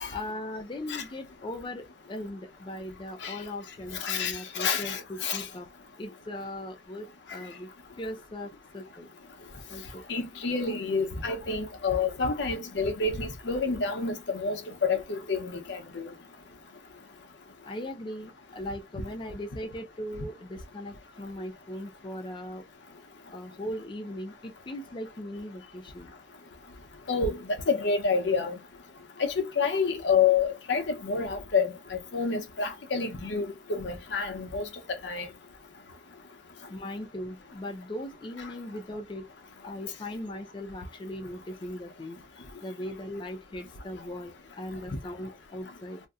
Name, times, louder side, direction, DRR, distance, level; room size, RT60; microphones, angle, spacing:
voice 1, 0.1-5.7 6.0-7.7 8.0-9.1 9.7-10.1 17.6-22.6 23.3-26.1 36.7-39.2 39.6-42.2 42.6-46.0, left 1 dB, 25° left, 0.4 m, -39 dB
voice 2, 3.9-5.4 10.1-15.8 27.1-28.6 29.2-35.3, left 5 dB, 80° left, 0.7 m, -28 dB
2.6 x 2.1 x 3.5 m
head